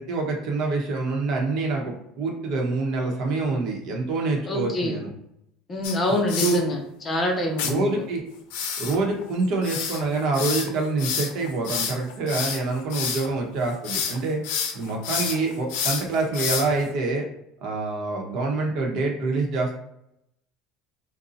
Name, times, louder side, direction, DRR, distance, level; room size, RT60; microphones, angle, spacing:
voice 1, 0.0-5.1 6.4-6.6 7.6-8.2 8.8-14.4 14.7-17.2 17.6-19.7, right 3 dB, 60° right, 0 dB, 1.0 m, -26 dB
voice 2, 4.5-5.0 5.7-6.8 7.1-7.9, left 1 dB, 30° left, 2 dB, 0.8 m, -25 dB
sound 1, 5.8-6.6 7.6-7.7 8.5-13.3 13.6-14.2 14.4-16.9, left 7 dB, 80° left, 0.5 m, -29 dB
2.7 x 2.3 x 3.9 m, 0.78 s
supercardioid pair, 115°, 0 cm